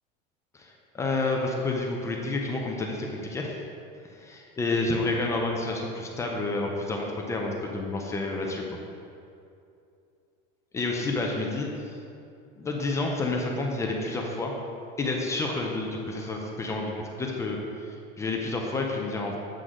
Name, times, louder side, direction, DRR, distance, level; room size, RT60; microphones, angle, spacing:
voice 1, 0.5-3.6 4.1-8.6 10.7-11.7 12.6-14.5 15.0-16.9 17.2-19.4, left 2 dB, 15° left, 0 dB, 0.6 m, -29 dB
8.1 x 7.6 x 3.7 m, 2.6 s
cardioid pair, 170°, 21 cm